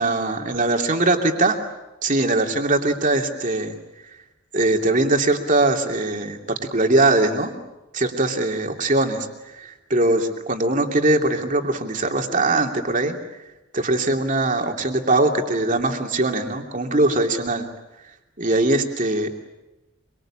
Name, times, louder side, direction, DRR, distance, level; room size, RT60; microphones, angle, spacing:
voice 1, 0.0-1.6 2.0-3.7 4.5-7.5 7.9-9.3 9.5-13.1 13.7-17.7 18.4-19.3, right 2 dB, 35° right, 3 dB, 2.8 m, -21 dB
25.5 x 24.5 x 8.8 m, 0.97 s
head